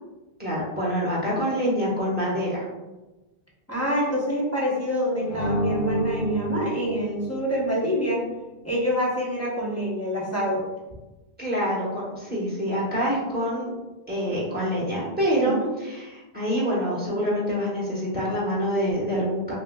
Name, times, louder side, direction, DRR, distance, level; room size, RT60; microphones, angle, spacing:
voice 1, 0.4-2.6 11.4-13.7 14.1-19.5, equal, 10° right, -7 dB, 1.2 m, -26 dB
voice 2, 3.7-8.2 8.6-10.6 15.3-15.7, equal, 15° left, -5 dB, 0.8 m, -26 dB
sound 1, 5.3-8.0, equal, 60° left, 0.8 m, -29 dB
6.0 x 2.2 x 2.2 m, 1.1 s
omnidirectional pair, 1.1 m